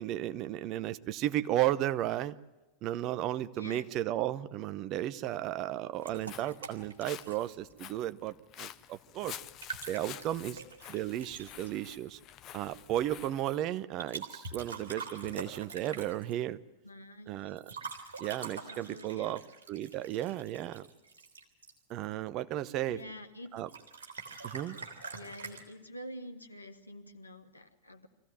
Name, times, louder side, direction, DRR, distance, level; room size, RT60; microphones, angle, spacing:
voice 1, 0.0-2.3 2.8-9.4 9.9-10.6 10.9-12.2 12.5-16.6 17.3-17.6 18.2-19.4 19.7-20.9 21.9-23.0 23.5-23.7 24.4-24.8, right 13 dB, 35° right, 13 dB, 0.9 m, -34 dB
voice 2, 3.6-3.9 16.8-17.6 18.6-19.4 22.9-23.6 25.1-28.1, equal, 80° left, 6 dB, 1.8 m, -47 dB
Walk footsteps, 6.0-13.6, left 11 dB, 35° left, 0.8 m, -49 dB
sound 1, 6.0-7.8 9.4-11.7 14.0-16.4 17.6-22.1 23.6-25.6, right 4 dB, 65° right, 3.3 m, -45 dB
24.5 x 16.0 x 9.2 m, 1.1 s
figure-of-eight pair, 90°, 0 cm